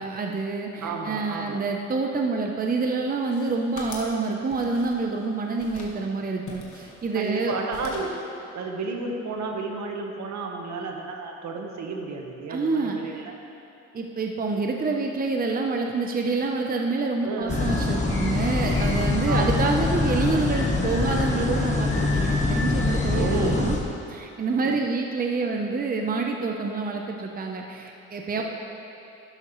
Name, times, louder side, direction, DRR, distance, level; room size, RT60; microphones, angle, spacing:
voice 1, 0.0-7.6 12.5-13.2 13.9-23.8 24.1-28.4, right 3 dB, 30° right, 2 dB, 0.8 m, -27 dB
voice 2, 0.8-1.6 7.1-8.1 8.5-13.3 17.2-17.6 19.2-19.8 23.1-23.6 24.5-24.8 28.3-28.4, right 3 dB, 65° right, 2 dB, 1.4 m, -32 dB
sound 1, 3.1-4.2 4.5-5.2 5.6-6.0 6.5-7.4 7.7-8.2, left 3 dB, 75° left, 1.7 m, -43 dB
sound 2, 17.4-23.1, left 1 dB, 40° left, 2.3 m, -38 dB
sound 3, 17.5-23.8, left 3 dB, 25° left, 1.3 m, -24 dB
11.5 x 11.5 x 3.2 m, 2.8 s
cardioid pair, 90°, 30 cm